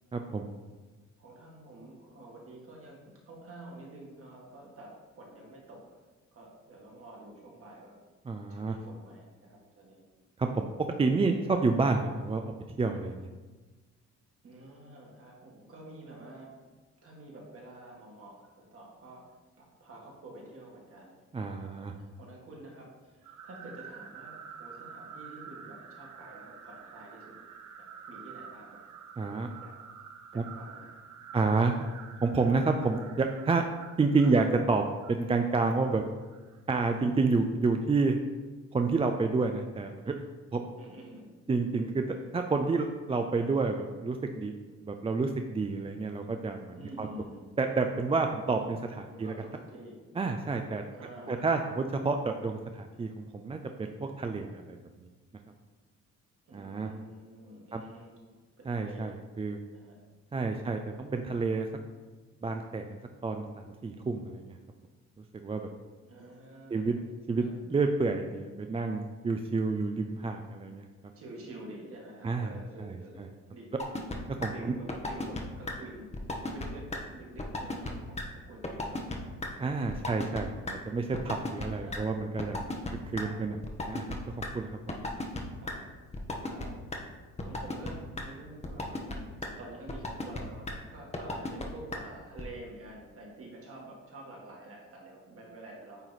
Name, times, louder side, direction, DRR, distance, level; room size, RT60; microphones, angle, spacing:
voice 1, 0.1-0.5 8.3-8.8 10.4-10.7 11.0-12.5 12.8-13.3 21.3-21.9 29.2-29.5 30.3-30.4 31.3-31.7 32.2-33.6 34.0-34.8 35.1-36.0 36.7-38.2 38.7-40.1 40.5-40.6 41.5-42.0 42.3-44.5 44.8-47.1 47.6-49.3 50.2-50.8 51.3-55.1 56.5-56.9 57.7-57.8 58.7-59.6 60.3-61.7 62.4-64.6 65.3-65.7 66.7-66.9 67.3-70.8 72.2-73.3 74.4-74.7 79.6-82.6 83.1-83.5 83.9-84.7, right 3 dB, 20° right, 5 dB, 0.4 m, -29 dB
voice 2, 1.2-6.0 6.3-8.0 8.5-10.0 11.2-11.3 14.4-16.5 17.0-19.3 19.6-21.2 21.5-27.4 27.8-28.8 29.2-29.8 30.3-31.0 34.2-34.5 40.8-41.4 46.8-47.5 49.1-50.0 50.9-51.7 56.5-59.2 59.7-60.0 66.0-67.0 67.4-67.5 71.1-73.7 74.5-76.1 76.5-79.4 79.9-80.1 81.7-82.2 83.2-83.6 85.6-85.9 86.5-86.9 87.4-96.1, right 1 dB, 50° right, -2 dB, 1.9 m, -48 dB
sound 1, 23.2-36.6, right 7 dB, 75° right, 0.7 m, -49 dB
sound 2, 73.8-74.2 74.4-74.5 74.9-75.4 75.7-75.8 76.1-76.7 76.9-77.0 77.4-77.9 78.2-78.3 78.6-79.2 79.4-79.5 79.9-80.4 80.7-80.8 81.1-81.7 81.9-82.0 82.4-83.2 83.6-84.5 84.9-85.4 85.7-85.8 86.1-86.6 86.9-87.0 87.4-87.9 88.2-88.3 88.6-89.1 89.4-89.5 89.9-90.4 90.7-90.8 91.1-91.6 91.9-92.0 92.4-92.5, left 2 dB, 20° left, 0.8 m, -34 dB
8.9 x 3.0 x 4.1 m, 1.3 s
cardioid pair, 95°, 29 cm